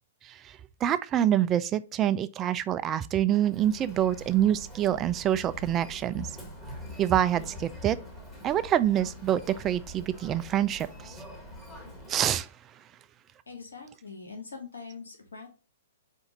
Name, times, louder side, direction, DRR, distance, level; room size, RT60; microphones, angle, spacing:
voice 1, 0.2-6.3 7.0-8.0 8.4-11.2 12.1-12.5, right 11 dB, 25° right, 0.3 m, -26 dB
Human voice, 3.4-12.4, equal, 10° left, 1.4 m, -44 dB
voice 2, 13.5-15.5, left 4 dB, 80° left, 1.1 m, -43 dB
4.4 x 2.4 x 3.9 m
hypercardioid pair, 120°, 0 cm